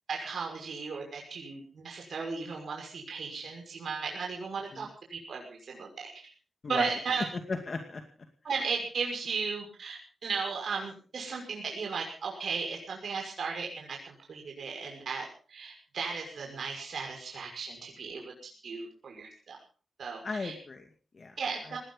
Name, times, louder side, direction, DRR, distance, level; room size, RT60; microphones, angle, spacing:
voice 1, 0.1-5.9 6.1-6.2 6.7-7.3 8.4-18.3 18.6-19.6 20.0-20.5 21.4-21.8, right 5 dB, 65° right, 0 dB, 6.0 m, -35 dB
voice 2, 7.3-8.0 20.2-21.4 21.6-21.8, left 3 dB, 40° left, 5 dB, 2.3 m, -37 dB
20.0 x 17.5 x 4.0 m, 0.39 s
wide cardioid pair, 170°, 0 cm